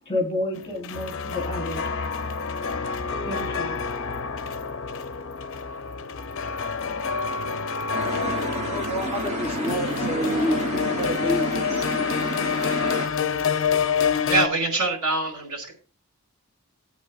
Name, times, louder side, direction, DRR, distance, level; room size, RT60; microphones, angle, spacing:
voice 1, 0.0-2.1 3.2-3.7, left 2 dB, 25° left, 3 dB, 3.2 m, -30 dB
sound 1, 0.6-14.5, left 6 dB, 60° left, 0.6 m, -28 dB
sound 2, 7.9-13.1, right 1 dB, 30° right, 2.7 m, -30 dB
voice 2, 8.7-10.6 11.0-11.5, equal, 10° right, 1 dB, 0.8 m, -28 dB
voice 3, 14.3-15.7, right 3 dB, 85° right, 2 dB, 5.0 m, -24 dB
18.5 x 8.4 x 2.3 m, 0.35 s
head